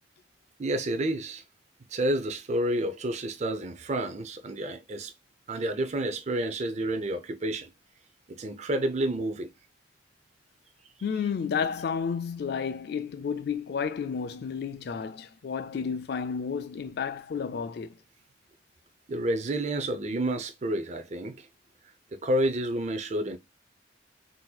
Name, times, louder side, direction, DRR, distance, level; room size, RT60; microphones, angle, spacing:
voice 1, 0.6-1.4 1.9-5.1 5.5-7.7 8.3-9.5 19.1-21.5 22.1-23.4, right 1 dB, 35° right, 0.5 m, -29 dB
voice 2, 11.0-18.0, left 6 dB, 55° left, 0.3 m, -31 dB
3.9 x 2.7 x 2.3 m
head